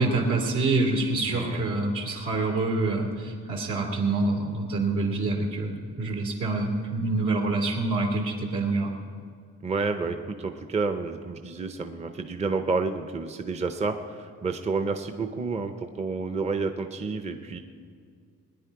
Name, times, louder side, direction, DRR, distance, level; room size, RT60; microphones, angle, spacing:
voice 1, 0.0-8.9, right 3 dB, 80° right, 0 dB, 2.7 m, -26 dB
voice 2, 1.3-1.7 9.6-17.6, right 4 dB, 25° right, 7 dB, 0.6 m, -30 dB
20.5 x 10.0 x 4.7 m, 2.2 s
cardioid pair, 140°, 29 cm